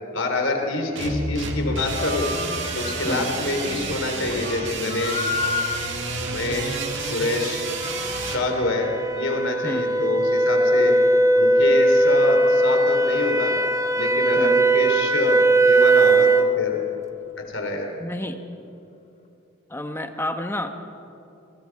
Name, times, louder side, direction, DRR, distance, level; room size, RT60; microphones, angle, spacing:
voice 1, 0.1-2.3 2.7-5.3 6.3-7.6 8.2-11.0 11.4-13.6 13.9-16.9 17.4-17.9, left 2 dB, 70° left, 3 dB, 3.5 m, -26 dB
sound 1, 1.0-8.4, right 3 dB, 60° right, 2.3 m, -30 dB
sound 2, 1.6-4.0 4.3-11.4 11.9-15.2 15.5-15.6 16.1-16.2, left 4 dB, 30° left, 1.4 m, -35 dB
sound 3, 6.6-16.6, right 2 dB, 15° right, 0.6 m, -20 dB
voice 2, 18.0-18.4 19.7-20.7, left 1 dB, 10° left, 6 dB, 1.1 m, -30 dB
27.5 x 24.0 x 4.8 m, 2.7 s
head